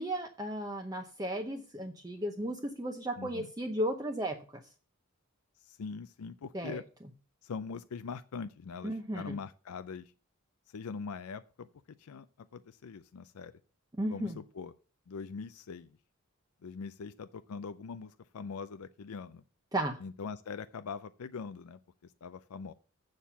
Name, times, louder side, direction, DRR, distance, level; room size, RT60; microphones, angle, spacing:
voice 1, 0.0-4.6 6.5-6.8 8.8-9.4 13.9-14.4 19.7-20.0, right 1 dB, 15° right, 4 dB, 0.7 m, -35 dB
voice 2, 3.2-3.5 5.6-6.8 7.4-10.1 10.7-13.5 14.1-14.7 15.1-15.9 16.6-19.4 20.0-22.7, left 5 dB, 85° left, 12 dB, 0.5 m, -42 dB
7.4 x 6.5 x 6.9 m, 0.38 s
head